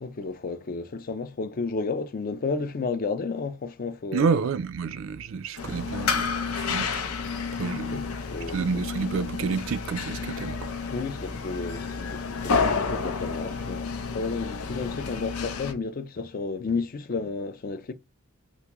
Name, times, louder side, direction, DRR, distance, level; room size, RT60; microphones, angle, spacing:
voice 1, 0.0-4.3 7.7-8.8 10.9-17.9, left 4 dB, 40° left, 0.4 m, -32 dB
voice 2, 4.1-7.2 7.5-8.0 8.5-10.7, right 5 dB, 60° right, 0.3 m, -29 dB
sound 1, 5.6-15.7, left 5 dB, 85° left, 0.6 m, -30 dB
3.5 x 2.5 x 2.9 m
head